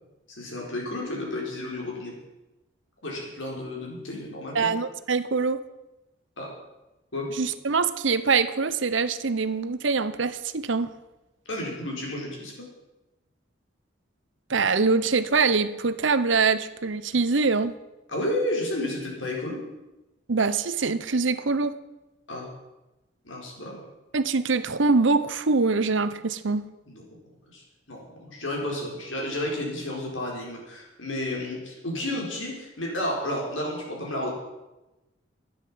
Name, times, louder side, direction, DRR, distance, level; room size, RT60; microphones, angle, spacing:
voice 1, 0.3-2.1 3.0-4.7 6.4-6.5 7.1-7.3 11.5-12.5 18.1-19.6 22.3-22.5 23.2-23.8 26.9-27.2 27.5-34.3, left 1 dB, 80° left, -1 dB, 4.6 m, -32 dB
voice 2, 4.5-5.6 7.4-10.9 14.5-17.7 20.3-21.8 24.1-26.6, right 4 dB, 75° right, 13 dB, 0.8 m, -24 dB
12.0 x 9.9 x 7.5 m, 1.0 s
head